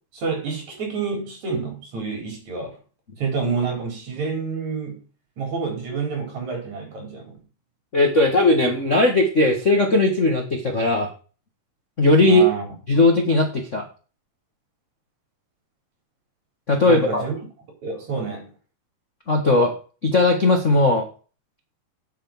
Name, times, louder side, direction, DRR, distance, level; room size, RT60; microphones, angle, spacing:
voice 1, 0.1-2.8 3.2-5.0 5.4-7.3 12.2-12.7 16.8-17.3 17.8-18.5, right 5 dB, 50° right, 5.5 m, -28 dB
voice 2, 7.9-11.1 12.0-12.5 12.9-13.8 16.7-17.3 19.3-19.7 20.0-21.1, left 2 dB, 45° left, 0.9 m, -18 dB
8.9 x 7.6 x 7.3 m
omnidirectional pair, 4.3 m